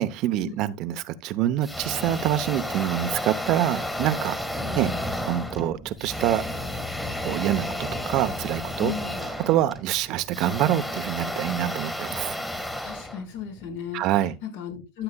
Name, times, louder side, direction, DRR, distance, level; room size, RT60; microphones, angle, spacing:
voice 1, 0.0-4.4 4.7-4.9 5.3-6.4 7.2-8.9 9.2-12.4 13.9-14.4, right 12 dB, 55° right, 0.8 m, -26 dB
sound 1, 1.6-13.8, left 1 dB, 5° left, 1.6 m, -32 dB
voice 2, 4.6-4.9 8.8-9.2 12.8-14.0 14.5-15.0, left 9 dB, 75° left, 5.3 m, -35 dB
13.0 x 7.8 x 2.3 m
hypercardioid pair, 95°, 0 cm